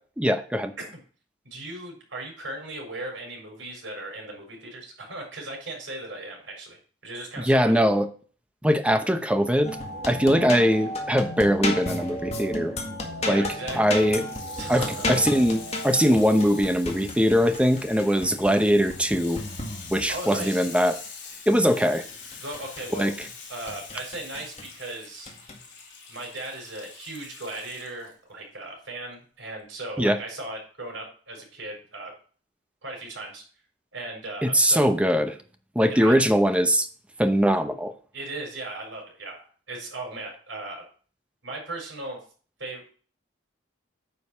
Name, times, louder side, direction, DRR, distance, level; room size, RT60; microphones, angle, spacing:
voice 1, 0.2-0.7 7.4-8.1 8.6-9.8 10.0-12.7 13.3-13.5 13.8-14.2 14.7-19.4 19.9-21.0 21.5-22.0 23.0-23.1 30.0-30.2 34.4-35.4 35.7-36.9 37.2-37.9, equal, 5° right, 8 dB, 0.8 m, -21 dB
voice 2, 1.4-7.7 13.2-14.1 14.6-15.1 20.1-20.7 22.4-23.1 23.5-25.3 26.1-32.1 32.8-33.4 33.9-34.9 35.9-36.2 38.1-40.8 41.4-42.2 42.6-42.9, right 2 dB, 80° right, 0 dB, 4.7 m, -37 dB
sound 1, 9.6-20.3 22.1-23.3 23.7-24.7 25.3-25.6, left 1 dB, 35° left, 1.9 m, -33 dB
Water tap faucet / Sink (filling or washing), 14.1-28.1 28.8-28.9, left 5 dB, 55° left, 4.3 m, -44 dB
9.5 x 5.2 x 5.7 m, 0.41 s
head